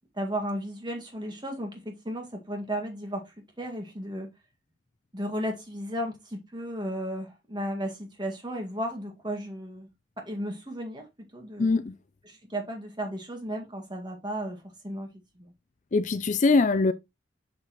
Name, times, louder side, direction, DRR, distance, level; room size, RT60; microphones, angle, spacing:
voice 1, 0.1-4.3 5.1-9.9 10.2-11.1 11.3-11.8 12.3-15.1 15.4-15.5, equal, 25° right, 1.9 m, -34 dB
voice 2, 11.6-11.9 15.9-16.9, left 3 dB, 40° left, 0.4 m, -22 dB
6.6 x 6.2 x 3.0 m
head